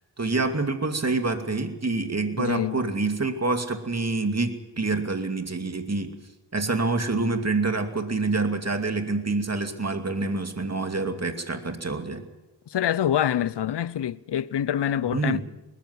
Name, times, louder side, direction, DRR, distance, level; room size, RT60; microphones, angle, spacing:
voice 1, 0.2-6.1 6.5-12.2 15.1-15.4, right 3 dB, 35° right, 2.5 m, -27 dB
voice 2, 2.4-2.8 12.7-15.4, left 10 dB, 65° left, 0.7 m, -25 dB
20.0 x 14.0 x 9.6 m
cardioid pair, 60°, 44 cm